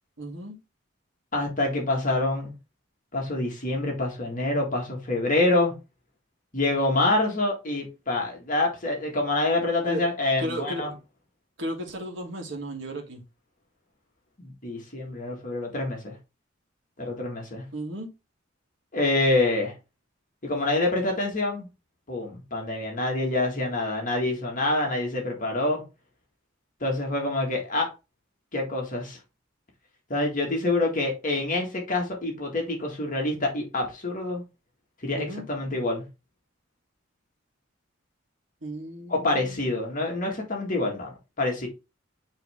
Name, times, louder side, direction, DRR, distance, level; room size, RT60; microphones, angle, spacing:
voice 1, 0.2-0.6 9.9-10.0 10.4-11.0 11.6-13.2 17.7-18.1 35.1-35.4 38.6-39.8, right 1 dB, 70° right, 1.6 m, -34 dB
voice 2, 1.3-2.5 3.1-5.8 6.5-10.9 14.4-16.1 17.0-17.6 18.9-19.7 20.4-21.7 22.1-25.8 26.8-27.9 28.5-29.2 30.1-34.4 35.0-36.0 39.1-41.7, left 2 dB, 45° left, 1.8 m, -26 dB
8.3 x 3.3 x 3.6 m
head